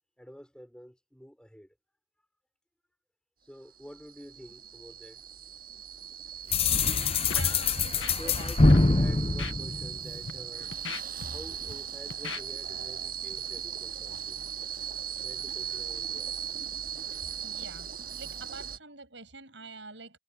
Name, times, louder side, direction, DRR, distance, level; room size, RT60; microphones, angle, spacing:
voice 1, 0.2-1.7 3.4-5.2 8.1-10.8 11.2-14.5 15.2-16.4, equal, 5° left, 5.9 m, -49 dB
sound 1, 3.8-18.8, right 9 dB, 50° right, 7.7 m, -38 dB
sound 2, 6.5-10.4, left 3 dB, 30° left, 0.8 m, -24 dB
voice 2, 7.2-8.5 17.4-17.9 18.2-20.2, right 4 dB, 75° right, 6.5 m, -46 dB
Scratching (performance technique), 7.3-7.5 7.8-8.4 8.7-8.9 9.4-9.5 10.1-10.3 10.7-11.7 12.1-12.4, left 5 dB, 90° left, 1.4 m, -38 dB
head